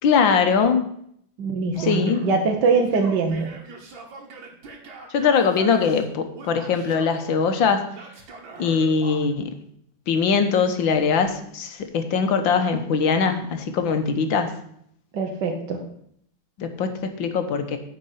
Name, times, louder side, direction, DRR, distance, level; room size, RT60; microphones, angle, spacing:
voice 1, 0.0-0.9 1.8-2.2 5.1-7.8 8.6-9.5 10.1-14.6 16.6-17.8, left 5 dB, 75° left, 7 dB, 1.8 m, -21 dB
voice 2, 1.4-3.5 15.1-15.8, right 4 dB, 65° right, 2 dB, 1.8 m, -22 dB
Male speech man speaking / Yell, 1.7-2.4 2.8-6.1 6.3-7.3 7.9-9.3, right 4 dB, 85° right, 2.4 m, -42 dB
9.7 x 5.3 x 7.9 m, 0.68 s
omnidirectional pair, 2.1 m